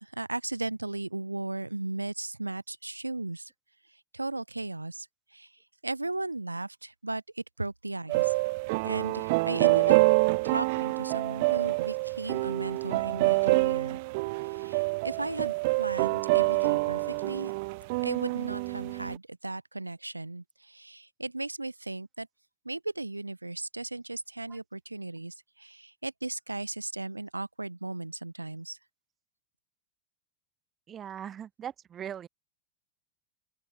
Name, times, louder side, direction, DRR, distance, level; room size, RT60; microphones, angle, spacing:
voice 1, 0.0-3.5 4.1-5.1 5.3-5.5 5.8-8.3 8.8-10.0 10.4-14.0 14.5-17.5 18.0-22.3 22.6-28.8, right 2 dB, 85° right, 1.5 m, -36 dB
sound 1, 8.1-19.2, right 25 dB, 50° right, 0.8 m, -27 dB
voice 2, 30.9-32.3, right 9 dB, 25° right, 1.7 m, -40 dB
open air
figure-of-eight pair, 90°, 0 cm